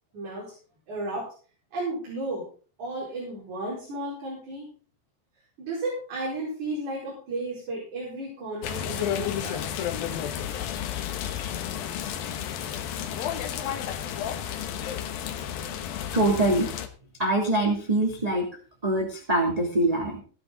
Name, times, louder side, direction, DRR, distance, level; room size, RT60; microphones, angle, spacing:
voice 1, 0.1-0.5 0.9-1.3 1.7-2.5 2.8-4.7 5.6-9.6 11.7-11.8, right 2 dB, 45° right, -4 dB, 6.0 m, -33 dB
sound 1, 8.6-16.9, left 9 dB, 70° left, 2.8 m, -32 dB
voice 2, 16.1-16.7 17.2-18.5 18.8-20.2, right 1 dB, 10° right, -1 dB, 1.9 m, -24 dB
16.5 x 11.0 x 4.0 m, 0.39 s
omnidirectional pair, 4.8 m